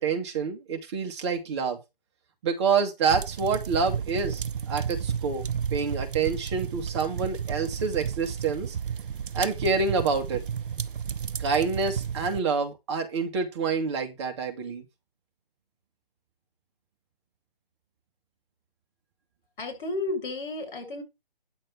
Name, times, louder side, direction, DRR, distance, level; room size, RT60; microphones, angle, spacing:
voice 1, 0.0-1.8 2.4-5.4 5.7-8.8 9.3-10.4 11.4-14.8, right 5 dB, 30° right, 4 dB, 2.1 m, -27 dB
sound 1, 3.1-12.4, right 7 dB, 60° right, 0.8 m, -32 dB
voice 2, 19.6-21.0, left 2 dB, 55° left, 4 dB, 7.7 m, -32 dB
9.9 x 7.3 x 4.8 m, 0.24 s
hypercardioid pair, 155°, 29 cm